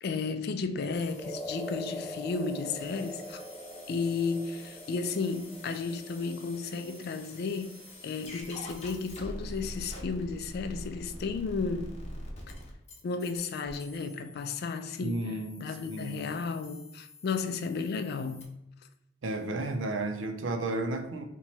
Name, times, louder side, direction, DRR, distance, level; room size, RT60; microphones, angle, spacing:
voice 1, 0.0-3.4 3.9-12.0 13.0-15.3 15.6-18.6, left 4 dB, 55° left, 0.3 m, -33 dB
sound 1, 0.9-18.4, left 1 dB, 35° left, 0.8 m, -46 dB
sound 2, 1.2-9.5, left 1 dB, 10° left, 0.9 m, -44 dB
voice 2, 15.0-16.3 19.2-21.2, right 2 dB, 85° right, 0.5 m, -33 dB
3.0 x 2.2 x 4.1 m
head